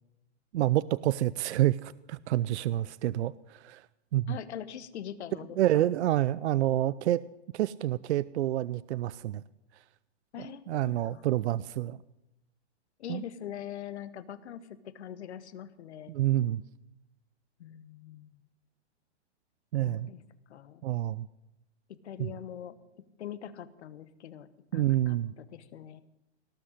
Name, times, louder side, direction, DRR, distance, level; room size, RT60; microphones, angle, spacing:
voice 1, 0.5-3.9 4.1-4.4 5.6-7.2 7.5-9.4 10.7-12.0 13.1-13.2 16.1-16.6 19.7-20.1 20.8-21.3 22.2-22.3 24.7-25.3, right 14 dB, 70° right, 19 dB, 0.5 m, -28 dB
voice 2, 4.3-5.9 10.3-11.2 13.0-16.1 17.6-18.4 19.8-20.2 20.5-20.8 21.9-22.7 23.2-26.0, left 10 dB, 70° left, 14 dB, 1.2 m, -43 dB
18.0 x 6.3 x 9.6 m, 0.89 s
hypercardioid pair, 145°, 34 cm